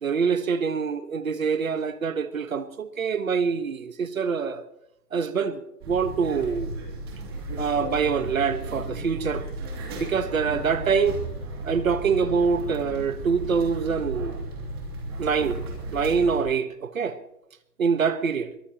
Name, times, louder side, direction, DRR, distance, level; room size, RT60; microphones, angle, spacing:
voice 1, 0.0-4.6 5.1-5.6 5.8-6.7 7.6-9.4 10.0-11.2 11.6-14.4 15.2-15.6 15.9-17.2 17.8-18.5, right 6 dB, 55° right, 1.4 m, -25 dB
sound 1, 5.8-16.4, right 1 dB, 15° right, 2.6 m, -34 dB
22.5 x 18.0 x 3.0 m
hypercardioid pair, 180°, 47 cm